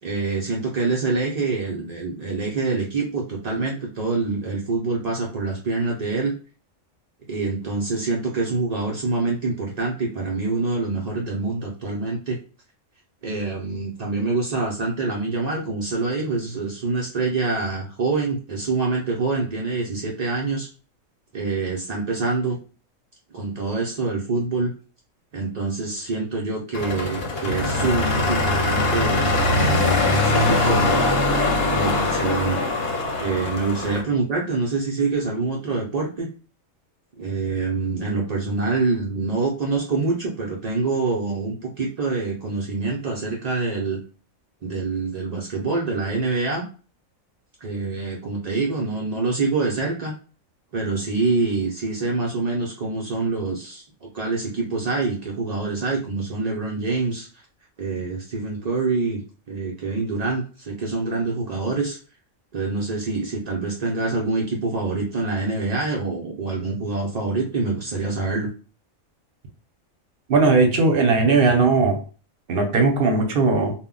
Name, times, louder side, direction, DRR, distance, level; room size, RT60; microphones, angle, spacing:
voice 1, 0.0-6.3 7.3-12.4 13.2-20.7 21.3-22.6 23.3-24.7 25.3-31.0 31.7-32.6 33.1-36.3 37.2-44.0 44.6-46.6 47.6-50.1 50.7-57.3 57.8-59.2 59.5-62.0 62.5-68.5, right 3 dB, 75° right, -2 dB, 0.3 m, -25 dB
sound 1, 26.7-34.0, left 2 dB, 55° left, 0.8 m, -22 dB
voice 2, 70.3-72.0 72.5-73.7, right 3 dB, 55° right, 3 dB, 0.7 m, -18 dB
2.1 x 2.1 x 3.7 m, 0.38 s
omnidirectional pair, 1.4 m